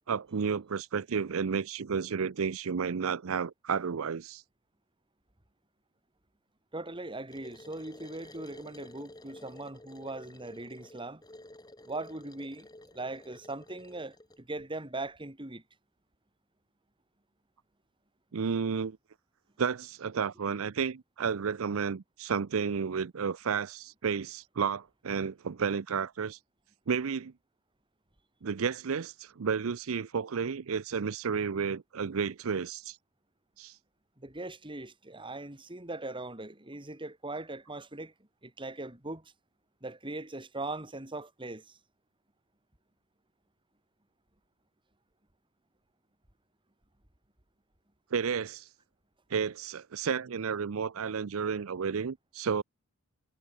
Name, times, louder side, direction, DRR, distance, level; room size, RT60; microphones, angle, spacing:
voice 1, 0.1-4.4 18.3-19.0 19.6-26.4 26.9-27.3 28.4-33.0 33.6-33.8 48.1-48.7 49.3-52.6, right 6 dB, 70° right, 0.5 m, -32 dB
voice 2, 6.7-11.2 11.9-12.7 12.9-15.6 34.2-38.1 38.4-39.3 39.8-41.8, right 2 dB, 25° right, 2.4 m, -40 dB
sound 1, 7.3-14.4, left 1 dB, 20° left, 3.0 m, -51 dB
head